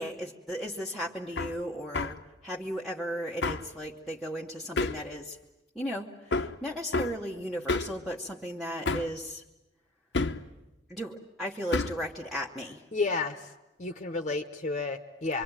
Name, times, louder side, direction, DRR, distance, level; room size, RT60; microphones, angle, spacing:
voice 1, 0.0-5.4 5.7-9.4 10.9-12.8, equal, ahead, -2 dB, 1.2 m, -36 dB
Hammer, 1.4-1.6 1.9-2.2 3.4-3.7 4.8-5.1 6.3-6.6 6.9-7.2 7.7-8.0 8.9-9.2 10.1-10.5 11.7-12.0, left 3 dB, 80° left, 0.9 m, -29 dB
voice 2, 12.9-13.5 13.8-15.4, left 3 dB, 40° left, 6 dB, 1.0 m, -31 dB
25.5 x 24.5 x 9.0 m, 0.98 s
head